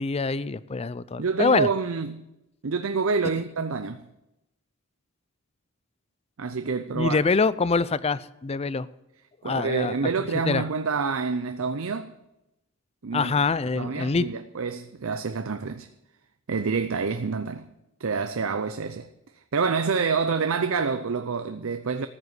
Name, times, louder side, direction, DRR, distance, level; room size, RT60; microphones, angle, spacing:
voice 1, 0.0-1.7 6.9-8.9 9.4-10.6 13.1-14.3, left 4 dB, 30° left, 0.5 m, -25 dB
voice 2, 1.2-2.3 2.6-4.0 6.4-7.2 9.4-12.1 13.0-13.3 13.7-15.9 16.5-17.7 18.0-19.1 19.5-22.1, right 5 dB, 75° right, 0.6 m, -27 dB
14.0 x 7.9 x 8.2 m
head